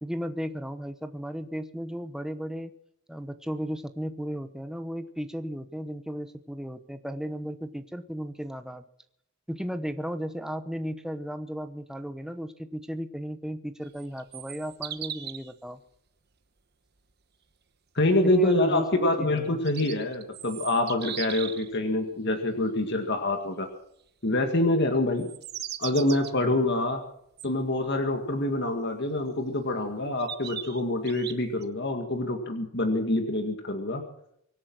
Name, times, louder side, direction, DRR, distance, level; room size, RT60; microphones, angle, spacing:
voice 1, 0.0-2.7 3.1-8.8 9.5-15.8 18.2-19.6, equal, 5° right, 9 dB, 0.9 m, -35 dB
sound 1, 13.9-15.5 19.4-21.7 25.1-26.3 27.4-27.5 29.3-29.4 30.2-31.6, right 10 dB, 50° right, 1.1 m, -38 dB
voice 2, 18.0-23.7 24.2-25.3 25.8-27.0 27.4-34.0, left 1 dB, 55° left, 5 dB, 2.0 m, -26 dB
24.5 x 8.8 x 6.1 m, 0.72 s
head